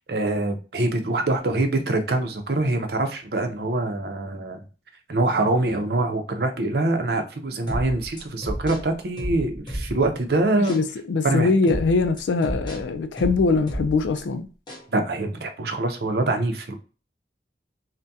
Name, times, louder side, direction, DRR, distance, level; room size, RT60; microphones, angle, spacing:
voice 1, 0.0-4.6 5.1-10.8 11.2-11.5 14.9-16.7, right 2 dB, 60° right, 0.6 m, -24 dB
sound 1, 7.7-10.2 10.7-10.9 11.7-14.2 14.7-14.9, equal, 25° left, 0.9 m, -32 dB
voice 2, 10.6-14.5, left 3 dB, 90° left, 0.3 m, -22 dB
3.4 x 2.2 x 2.6 m
head